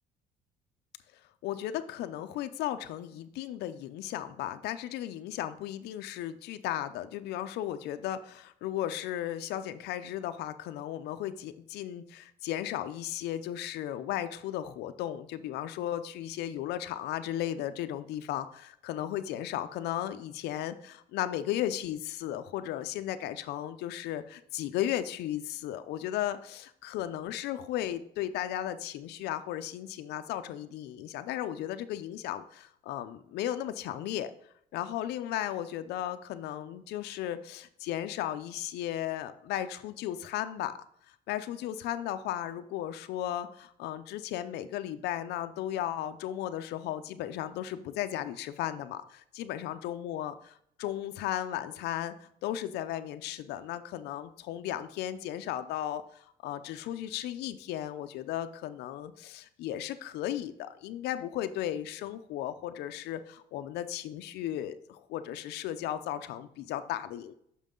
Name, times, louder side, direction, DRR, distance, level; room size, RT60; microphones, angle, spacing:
voice 1, 1.4-34.3 34.7-40.7 41.1-52.1 52.4-67.3, left 12 dB, 80° left, 11 dB, 0.5 m, -35 dB
6.5 x 5.4 x 3.8 m, 0.70 s
cardioid pair, 110°, 17 cm